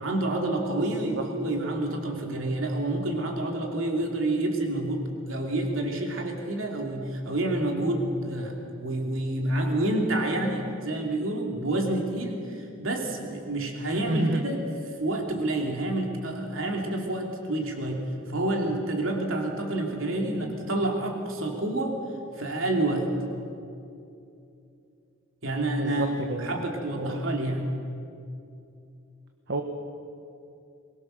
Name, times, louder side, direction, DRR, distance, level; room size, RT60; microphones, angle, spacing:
voice 1, 0.0-14.7 15.0-22.0 22.4-23.1 25.4-27.7, right 1 dB, 75° right, 1 dB, 2.9 m, -28 dB
voice 2, 0.8-1.2 13.9-14.4 25.8-26.6 27.0-27.2 29.5-29.6, right 2 dB, 60° right, 5 dB, 1.3 m, -30 dB
23.5 x 21.0 x 6.6 m, 2.6 s
head